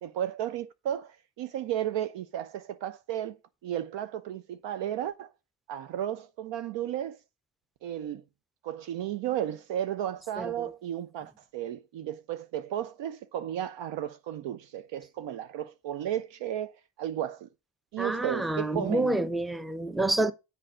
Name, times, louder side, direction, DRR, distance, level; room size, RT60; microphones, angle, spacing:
voice 1, 0.0-5.3 5.7-7.2 7.8-8.2 8.6-17.5 17.9-19.2, right 11 dB, 65° right, 0.6 m, -34 dB
voice 2, 10.4-10.7 18.0-20.3, right 2 dB, ahead, 0.5 m, -28 dB
7.6 x 4.5 x 5.0 m
supercardioid pair, 60°, 47 cm